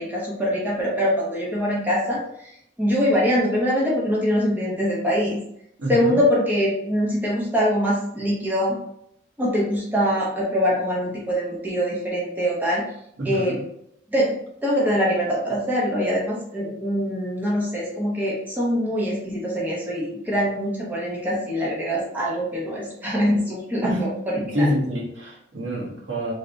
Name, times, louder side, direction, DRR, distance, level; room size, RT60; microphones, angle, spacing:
voice 1, 0.0-2.5 2.8-5.4 5.9-8.8 9.4-12.8 13.2-13.6 14.1-14.3 14.6-24.7, equal, 10° right, -5 dB, 0.7 m, -23 dB
voice 2, 13.2-13.6 23.8-24.0 24.3-26.3, equal, 65° right, -3 dB, 1.1 m, -26 dB
3.3 x 2.7 x 3.9 m, 0.74 s
head